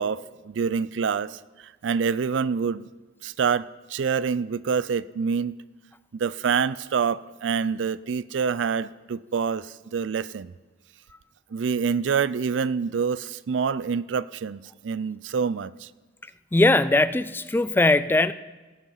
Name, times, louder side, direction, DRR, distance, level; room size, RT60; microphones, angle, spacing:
voice 1, 0.0-1.4 1.8-2.9 3.2-5.5 6.1-10.5 11.5-15.9, right 6 dB, 70° right, 0.4 m, -26 dB
voice 2, 16.5-18.3, left 2 dB, 10° left, 0.3 m, -20 dB
17.5 x 8.0 x 5.7 m
head